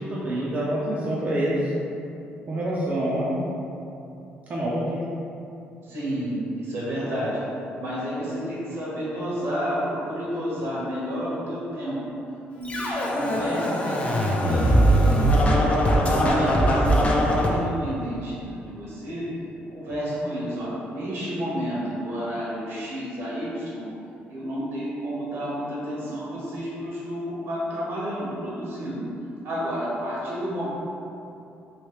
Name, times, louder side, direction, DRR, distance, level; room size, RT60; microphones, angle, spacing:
voice 1, 0.0-1.7 2.5-3.4 4.5-5.0, right 1 dB, 40° right, -7 dB, 0.5 m, -26 dB
voice 2, 5.8-7.4 7.7-12.0 12.5-17.2 17.5-19.2 19.7-23.8 24.3-29.0 29.4-30.7, equal, 75° right, -7 dB, 1.2 m, -31 dB
Scratching (performance technique), 12.7-17.5, equal, 30° left, 0.5 m, -21 dB
3.1 x 2.7 x 3.1 m, 2.8 s
cardioid pair, 100°, 4 cm